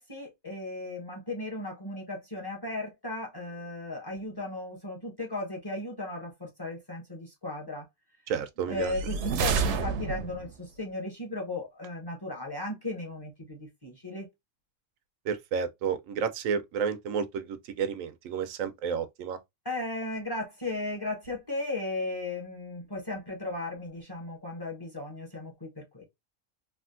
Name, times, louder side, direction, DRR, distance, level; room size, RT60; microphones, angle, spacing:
voice 1, 0.0-7.8 8.6-14.3 19.6-26.0, left 2 dB, 20° left, 0.9 m, -36 dB
voice 2, 8.3-8.9 15.2-19.4, right 6 dB, 90° right, 1.0 m, -31 dB
sound 1, 8.8-10.6, right 5 dB, 70° right, 0.8 m, -29 dB
3.4 x 2.4 x 2.5 m
omnidirectional pair, 1.3 m